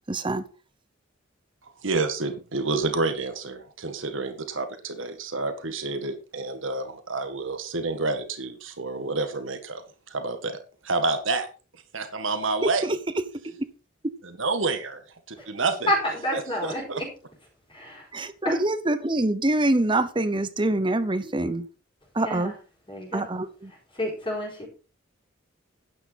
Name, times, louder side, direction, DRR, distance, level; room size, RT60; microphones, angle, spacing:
voice 1, 0.1-0.4 18.1-21.7 22.2-22.5 23.1-23.5, right 2 dB, 25° right, 0.9 m, -25 dB
voice 2, 1.8-10.6 10.8-11.5 11.9-13.0 14.2-15.0 15.3-15.9 16.3-17.0, right 3 dB, 80° right, 1.9 m, -29 dB
voice 3, 15.8-17.1 17.7-18.1 18.4-18.6 22.2-22.6 22.9-23.4 23.7-24.7, left 1 dB, 25° left, 4.6 m, -29 dB
12.0 x 9.6 x 4.2 m
head